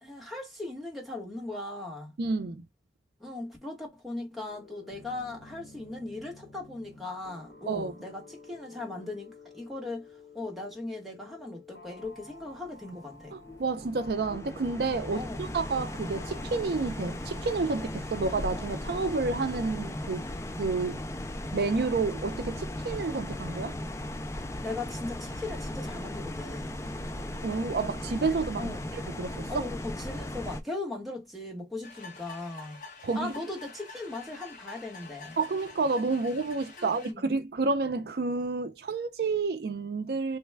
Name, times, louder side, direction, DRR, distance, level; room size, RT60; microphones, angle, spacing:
voice 1, 0.0-2.1 3.2-10.1 10.3-13.4 15.1-15.4 24.6-26.8 28.6-28.9 29.5-32.8 33.1-35.4 36.8-37.3, left 2 dB, ahead, 1.0 m, -38 dB
voice 2, 2.2-2.6 7.7-7.9 13.3-20.2 20.5-21.0 21.5-23.8 27.2-29.5 33.0-33.3 35.4-40.4, right 3 dB, 65° right, 0.4 m, -30 dB
sound 1, 4.5-20.0, left 3 dB, 75° left, 1.8 m, -53 dB
sound 2, 12.0-30.6, left 1 dB, 15° left, 0.3 m, -37 dB
sound 3, 31.8-37.1, left 4 dB, 45° left, 0.9 m, -47 dB
3.2 x 2.2 x 3.3 m
head